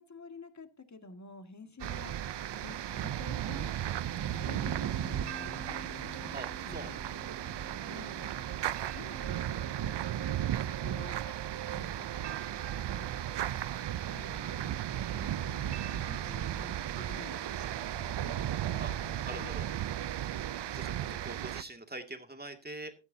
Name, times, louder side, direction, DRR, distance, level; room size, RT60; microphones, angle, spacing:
voice 1, 0.0-6.3 6.7-7.0 7.8-8.3 8.9-10.0 10.4-13.3 14.1-14.8 15.1-17.4 17.9-18.4 18.7-19.6, left 4 dB, 40° left, 8 dB, 1.9 m, -50 dB
sound 1, 1.8-21.6, right 11 dB, 65° right, 0.6 m, -35 dB
sound 2, 4.5-10.7, left 3 dB, 20° left, 1.1 m, -52 dB
voice 2, 6.3-6.9 14.9-15.3 18.8-18.9 19.2-19.7 20.7-22.9, right 2 dB, 20° right, 6 dB, 2.3 m, -44 dB
16.0 x 12.5 x 2.7 m, 0.29 s
cardioid pair, 75°, 45 cm